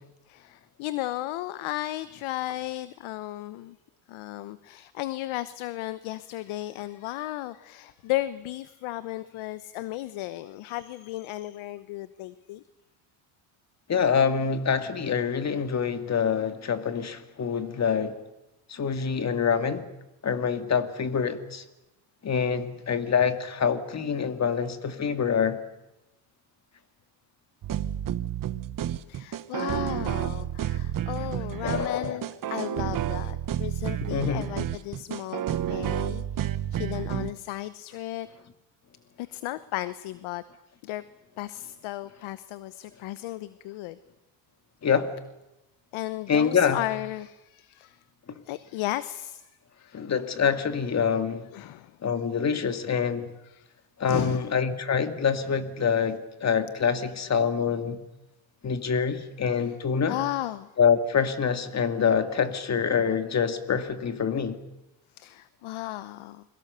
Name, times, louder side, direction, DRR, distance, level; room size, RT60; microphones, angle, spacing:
voice 1, 0.3-3.8 4.1-12.6 29.1-38.3 39.2-40.4 40.8-41.0 41.4-44.0 45.9-48.0 48.5-49.5 49.8-50.1 51.5-51.9 53.4-53.7 54.0-54.4 59.6-59.7 60.1-60.7 65.2-66.4, left 16 dB, 70° left, 1.0 m, -35 dB
voice 2, 13.9-18.2 18.7-19.8 20.2-21.6 22.2-25.6 31.6-32.2 34.1-34.5 44.8-45.1 46.3-46.8 49.9-51.5 52.0-53.3 54.0-58.0 58.6-60.2 60.8-64.6, left 6 dB, 30° left, 2.1 m, -26 dB
sound 1, 27.6-37.3, right 11 dB, 40° right, 1.1 m, -30 dB
29.5 x 22.5 x 6.8 m
cardioid pair, 120°, 50 cm